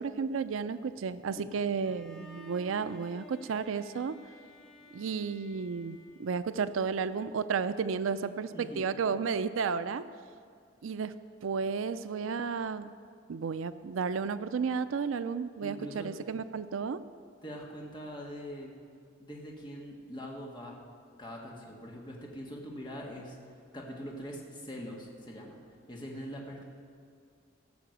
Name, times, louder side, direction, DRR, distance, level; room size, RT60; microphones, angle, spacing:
voice 1, 0.0-4.2 4.9-10.0 10.8-11.2 11.4-12.9 13.3-17.0, right 5 dB, 85° right, 13 dB, 0.4 m, -32 dB
Bowed string instrument, 1.8-6.8, equal, ahead, 1.0 m, -54 dB
voice 2, 8.5-8.9 15.6-16.1 17.4-18.7 19.2-20.7 21.2-23.4 23.7-25.6 25.9-26.6, equal, 25° left, -2 dB, 1.7 m, -43 dB
16.5 x 6.8 x 6.6 m, 2.3 s
head